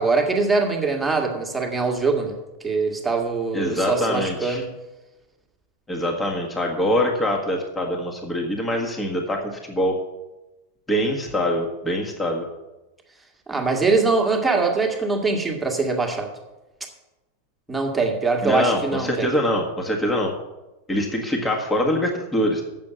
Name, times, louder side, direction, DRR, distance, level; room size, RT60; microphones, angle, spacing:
voice 1, 0.0-2.4 2.6-4.7 13.5-16.3 17.7-19.3, right 4 dB, 10° right, 1 dB, 1.8 m, -22 dB
voice 2, 3.5-4.6 5.9-9.9 10.9-12.5 18.4-20.3 20.9-22.6, equal, 10° left, 1 dB, 1.6 m, -24 dB
7.6 x 6.8 x 7.9 m, 1.0 s
figure-of-eight pair, 90°, 0 cm